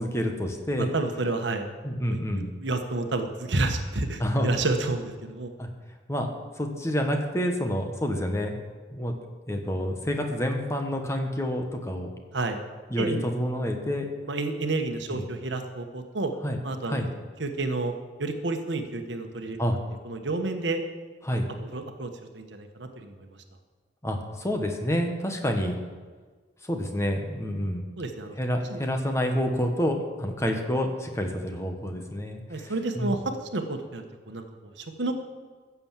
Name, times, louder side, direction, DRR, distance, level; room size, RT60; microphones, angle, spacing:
voice 1, 0.0-0.9 1.8-2.5 4.2-4.5 4.8-4.9 5.6-5.7 6.1-6.3 6.6-8.6 8.9-9.1 9.5-12.1 12.9-14.1 15.1-15.2 16.4-16.6 16.9-17.1 19.6-19.8 21.2-21.5 24.0-25.8 26.6-27.8 28.4-33.1, equal, 15° left, 3 dB, 1.4 m, -28 dB
voice 2, 0.8-1.7 2.1-2.2 2.6-5.5 12.3-12.6 13.0-13.2 14.3-16.3 16.6-17.1 17.4-17.9 18.2-19.6 20.0-20.8 21.3-21.4 21.7-23.2 28.0-28.4 28.7-28.8 30.5-30.6 32.5-35.1, right 2 dB, 65° right, 6 dB, 1.2 m, -30 dB
15.5 x 7.1 x 7.4 m, 1.5 s
head